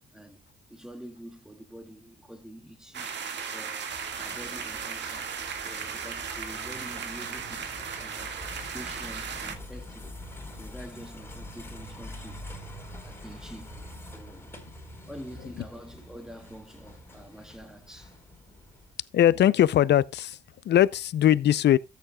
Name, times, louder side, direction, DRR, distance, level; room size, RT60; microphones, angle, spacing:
voice 1, 0.7-3.2 3.5-3.8 4.1-10.1 10.5-12.5 12.9-13.8 14.1-14.6 15.1-18.2, equal, 5° right, 2.1 m, -46 dB
sound 1, 2.9-9.6, right 6 dB, 60° right, 1.9 m, -36 dB
sound 2, 3.9-18.9, left 1 dB, 10° left, 4.7 m, -45 dB
voice 2, 19.1-20.4 20.6-21.8, left 11 dB, 60° left, 0.6 m, -20 dB
13.5 x 9.2 x 2.3 m
cardioid pair, 90°, 20 cm